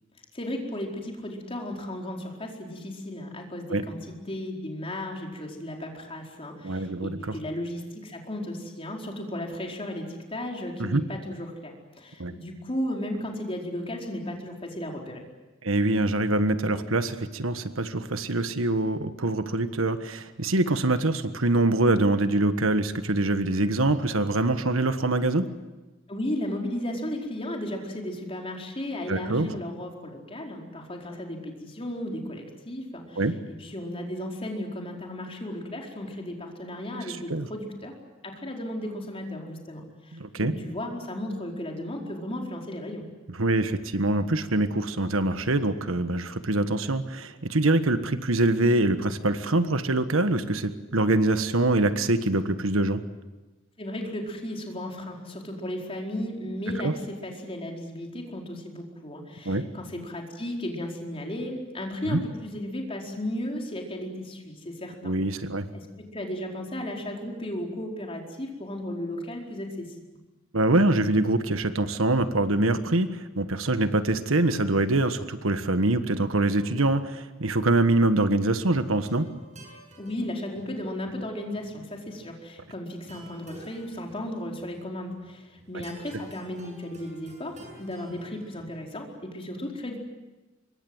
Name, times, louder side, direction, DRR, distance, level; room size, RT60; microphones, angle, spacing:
voice 1, 0.3-15.2 26.1-33.3 33.6-37.9 38.2-43.1 53.8-65.1 65.7-69.9 80.0-90.0, left 1 dB, 30° left, 1 dB, 4.6 m, -35 dB
voice 2, 6.6-7.3 10.8-11.0 12.2-12.3 15.6-25.4 29.1-29.5 33.2-33.3 37.0-37.5 40.1-40.5 43.3-53.0 56.8-56.9 59.4-59.7 62.1-62.2 65.0-65.6 70.5-79.3, right 2 dB, 80° right, 10 dB, 1.5 m, -24 dB
sound 1, 78.8-88.9, right 1 dB, 35° right, 7.4 m, -51 dB
26.0 x 23.5 x 8.0 m, 1.1 s
head